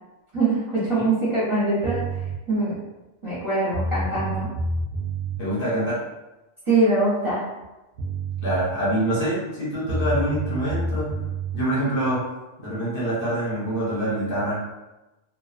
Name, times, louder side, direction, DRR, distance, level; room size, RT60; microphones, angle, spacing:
voice 1, 0.3-2.0 2.5-2.8 3.2-4.5 6.7-7.4, right 2 dB, 30° right, -10 dB, 0.7 m, -23 dB
sound 1, 1.8-2.4 3.4-3.5 3.7-5.4 7.6-7.7 8.0-8.6 9.9-11.6, right 2 dB, 65° right, 0.7 m, -28 dB
voice 2, 5.4-6.0 8.4-11.1 11.5-12.2 12.6-14.7, right 1 dB, 55° left, -7 dB, 1.0 m, -25 dB
2.5 x 2.3 x 2.4 m, 1.0 s
omnidirectional pair, 1.2 m